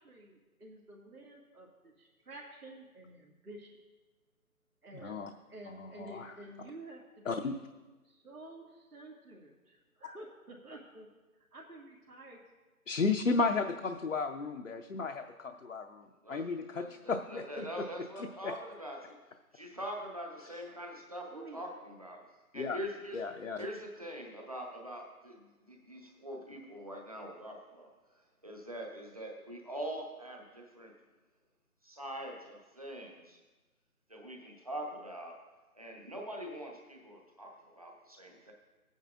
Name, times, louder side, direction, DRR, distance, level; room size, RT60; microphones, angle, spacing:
voice 1, 0.0-3.7 4.8-5.1 5.5-7.6 8.0-11.1 11.5-12.4 21.3-21.6, right 2 dB, 80° right, -4 dB, 2.2 m, -51 dB
voice 2, 5.8-6.3 7.3-7.6 12.9-17.7 18.2-18.5 22.5-22.8 23.1-23.7, left 4 dB, 55° left, 4 dB, 0.7 m, -34 dB
voice 3, 16.7-19.2 19.5-23.3 23.6-30.9 31.8-33.4 34.1-35.4 35.7-38.5, equal, 25° right, 0 dB, 1.0 m, -43 dB
19.0 x 9.2 x 2.5 m, 1.2 s
figure-of-eight pair, 175°, 45 cm